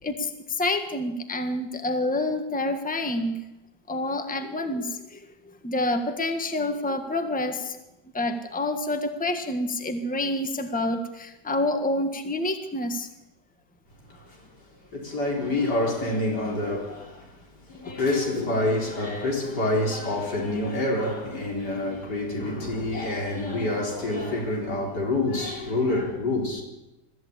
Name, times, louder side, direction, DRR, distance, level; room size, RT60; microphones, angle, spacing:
voice 1, 0.0-3.4 3.9-7.8 8.1-13.1 17.8-18.0, left 1 dB, 5° left, 1.5 m, -28 dB
voice 2, 14.1-14.5 14.9-26.6, left 2 dB, 80° left, 4.6 m, -27 dB
22.5 x 14.0 x 8.7 m
omnidirectional pair, 1.8 m